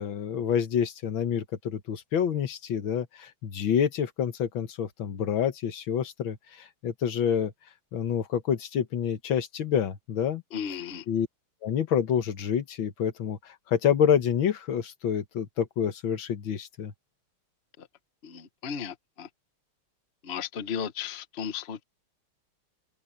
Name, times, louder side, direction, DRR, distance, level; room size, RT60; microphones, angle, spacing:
voice 1, 0.0-7.5 7.9-10.4 11.1-11.3 11.6-16.9, left 8 dB, 65° left, 2.0 m, -28 dB
voice 2, 10.5-11.0 17.8-17.9 18.2-19.3 20.2-21.8, left 7 dB, 40° left, 1.0 m, -35 dB
omnidirectional pair, 2.4 m